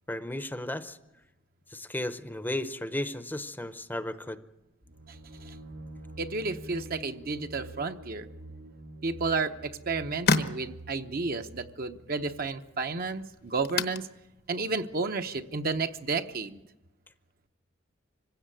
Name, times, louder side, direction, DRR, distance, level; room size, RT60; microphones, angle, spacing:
voice 1, 0.1-1.0 1.7-4.4, left 1 dB, 10° left, 11 dB, 0.7 m, -34 dB
sound 1, 4.8-12.5, right 1 dB, 90° right, 1.7 m, -47 dB
voice 2, 6.2-8.3 9.0-14.1 14.5-16.6, right 4 dB, 50° right, 7 dB, 0.9 m, -32 dB
sound 2, 9.3-16.6, left 4 dB, 55° left, 1.0 m, -35 dB
25.0 x 16.0 x 9.1 m, 0.97 s
head